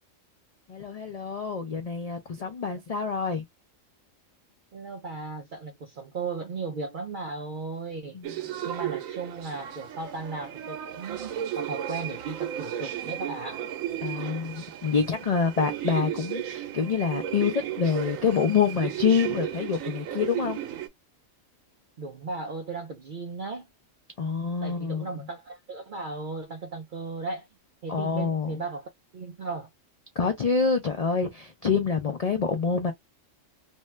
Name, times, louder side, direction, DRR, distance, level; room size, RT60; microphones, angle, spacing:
voice 1, 0.7-3.4 8.1-8.3 14.0-20.6 24.2-25.0 27.9-28.6 30.2-32.9, left 6 dB, 80° left, 0.3 m, -26 dB
voice 2, 4.7-8.2 8.6-13.7 22.0-23.7 24.2-24.3 24.6-27.5 27.8-29.7, right 4 dB, 70° right, 0.4 m, -36 dB
London Underground- Tower Hill tube station ambience, 8.2-20.9, right 11 dB, 90° right, 1.0 m, -34 dB
2.6 x 2.2 x 3.1 m
omnidirectional pair, 1.3 m